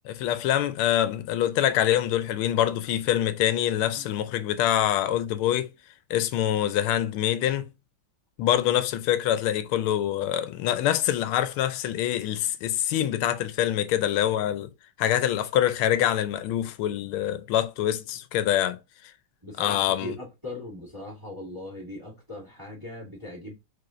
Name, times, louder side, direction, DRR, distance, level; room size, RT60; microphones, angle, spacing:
voice 1, 0.0-5.7 6.1-7.7 8.4-14.7 15.0-18.8 19.6-20.2, left 11 dB, 85° left, 1.5 m, -25 dB
voice 2, 19.4-23.6, left 1 dB, 15° right, 2.5 m, -39 dB
4.8 x 4.3 x 2.5 m
omnidirectional pair, 2.3 m